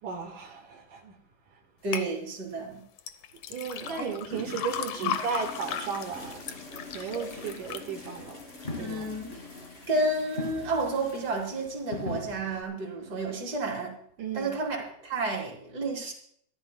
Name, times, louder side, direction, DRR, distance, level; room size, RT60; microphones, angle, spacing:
voice 1, 0.0-1.2 3.5-8.5 8.7-9.1 14.2-14.6, right 6 dB, 75° right, 1 dB, 3.0 m, -35 dB
voice 2, 1.8-2.8 4.0-4.1 5.0-5.1 8.8-9.3 9.9-14.0 14.3-16.1, right 2 dB, 30° right, 0 dB, 3.9 m, -31 dB
sound 1, 1.9-2.1 3.0-9.1 9.6-10.1 10.6-10.7, left 10 dB, 80° left, 1.3 m, -36 dB
sound 2, 3.7-4.1 4.3-5.5 5.8-7.0 7.3-7.6 8.0-8.3 8.6-12.6, left 2 dB, 25° left, 1.5 m, -43 dB
sound 3, 4.3-11.5, left 3 dB, 45° left, 6.5 m, -45 dB
25.5 x 13.5 x 2.2 m, 0.66 s
omnidirectional pair, 3.7 m